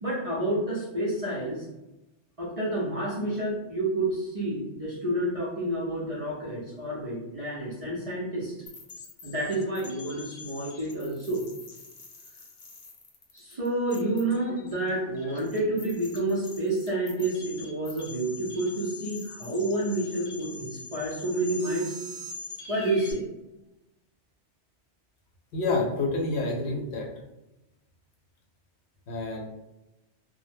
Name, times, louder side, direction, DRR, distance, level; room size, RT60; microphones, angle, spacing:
voice 1, 0.0-1.7 2.4-8.5 9.2-11.5 13.3-22.0 22.7-23.2, right 1 dB, 45° right, -7 dB, 0.5 m, -29 dB
sound 1, 8.7-23.1, left 2 dB, 50° left, 0.5 m, -44 dB
voice 2, 25.5-27.1 29.1-29.5, left 2 dB, 75° left, -1 dB, 0.8 m, -28 dB
2.2 x 2.0 x 3.3 m, 0.98 s
omnidirectional pair, 1.2 m